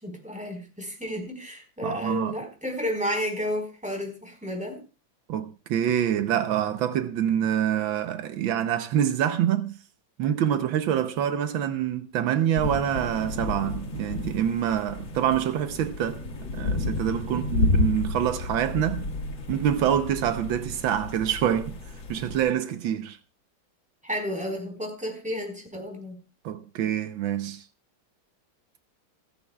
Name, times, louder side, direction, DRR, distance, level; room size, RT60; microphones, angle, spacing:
voice 1, 0.0-4.8 17.3-17.4 24.0-26.2, equal, 5° right, 4.4 m, -32 dB
voice 2, 1.8-2.3 5.3-9.8 10.2-16.2 16.5-19.1 19.5-21.8 22.1-23.2 26.5-27.6, right 10 dB, 85° right, 1.6 m, -26 dB
sound 1, 12.6-22.5, left 3 dB, 80° left, 2.6 m, -31 dB
28.5 x 9.8 x 2.3 m
omnidirectional pair, 2.1 m